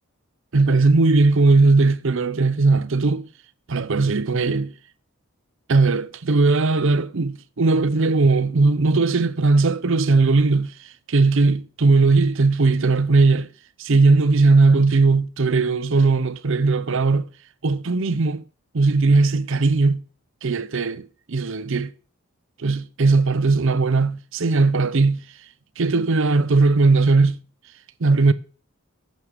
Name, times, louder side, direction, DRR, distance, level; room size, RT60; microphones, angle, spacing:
voice 1, 0.5-3.3 3.7-4.7 5.7-10.7 11.1-13.5 13.8-17.3 17.6-18.4 18.7-20.0 20.4-21.9 22.6-25.2 25.8-27.4 28.0-28.3, right 3 dB, 60° right, 0.6 m, -18 dB
8.9 x 6.5 x 6.7 m
head